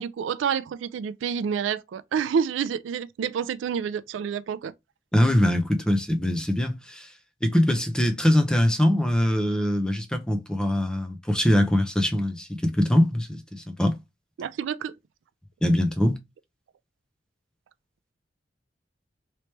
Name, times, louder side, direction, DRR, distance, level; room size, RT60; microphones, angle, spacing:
voice 1, 0.0-4.7 14.4-14.9, right 7 dB, 85° right, 0.3 m, -28 dB
voice 2, 5.1-7.1 7.4-14.0 15.6-16.2, left 1 dB, 5° left, 0.5 m, -23 dB
3.0 x 3.0 x 3.2 m
head